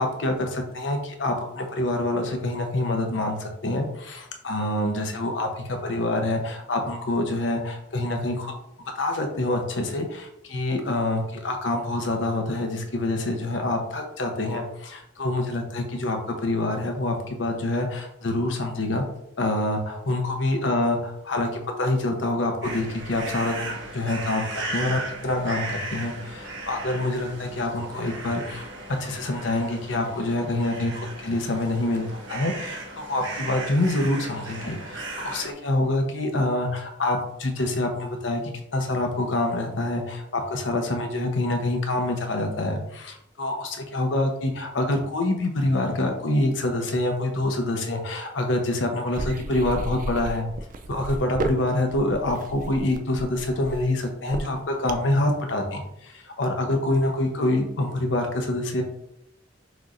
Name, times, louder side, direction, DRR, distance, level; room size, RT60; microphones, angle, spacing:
voice 1, 0.0-8.6 9.0-19.1 19.4-21.5 21.8-28.7 29.0-38.4 38.7-50.5 50.9-58.8, left 2 dB, 90° left, 3 dB, 0.8 m, -26 dB
sound 1, 22.6-35.5, right 2 dB, 80° right, 1.1 m, -36 dB
sound 2, 49.1-55.2, right 2 dB, 45° right, 0.3 m, -33 dB
6.1 x 3.0 x 2.5 m, 0.78 s
head